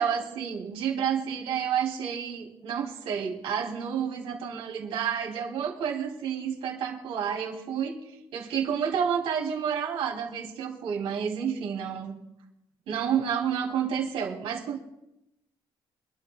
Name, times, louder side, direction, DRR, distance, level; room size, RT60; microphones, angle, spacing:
voice 1, 0.0-8.0 8.3-12.2 12.9-14.8, right 7 dB, 85° right, -1 dB, 2.6 m, -30 dB
25.0 x 12.5 x 2.2 m, 0.87 s
cardioid pair, 170°, 10 cm